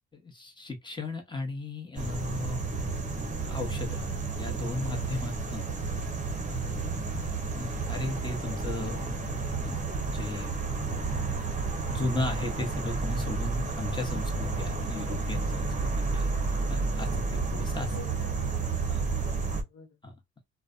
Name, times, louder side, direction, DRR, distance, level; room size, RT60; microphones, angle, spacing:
voice 1, 0.1-5.7 6.5-7.1 7.5-9.8 10.1-10.5 11.2-16.3 16.7-17.9 18.9-19.0 20.0-20.1, left 2 dB, 15° left, 1.0 m, -36 dB
sound 1, 2.0-19.6, right 3 dB, 25° right, 0.8 m, -31 dB
voice 2, 5.4-5.9 17.7-18.9 19.2-20.0, left 4 dB, 80° left, 1.0 m, -49 dB
2.4 x 2.2 x 2.4 m
cardioid pair, 90°, 30 cm